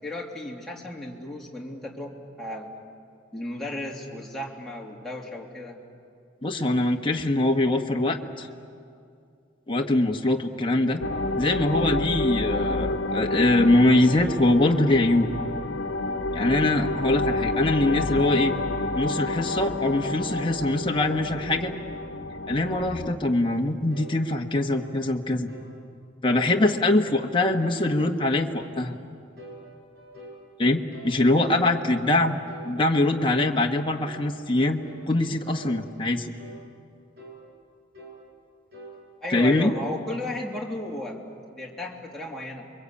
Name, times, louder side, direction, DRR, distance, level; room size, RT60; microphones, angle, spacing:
voice 1, 0.0-2.7 3.3-5.8 39.2-41.2 41.5-42.7, left 1 dB, ahead, -3 dB, 3.1 m, -34 dB
voice 2, 6.4-8.5 9.7-11.0 11.4-15.3 16.3-18.5 18.9-21.7 22.5-25.5 26.2-28.9 30.6-32.4 32.6-34.8 35.1-36.3 39.3-39.7, left 2 dB, 25° left, 2 dB, 1.4 m, -23 dB
sound 1, 11.0-23.2, left 2 dB, 85° left, 1.2 m, -29 dB
sound 2, 23.9-24.2 24.7-24.9 25.5-25.7 26.2-26.5 27.0-27.3 27.8-28.1 28.6-28.8 29.4-30.4 30.9-31.2 31.7-31.9 32.5-32.7 33.3-33.5 34.0-34.3 34.8-35.1 35.6-35.8 36.4-36.6 37.2-37.4 37.9-38.2 38.7-39.0, right 1 dB, 55° right, 5.9 m, -44 dB
30.0 x 23.0 x 8.5 m, 2.4 s
head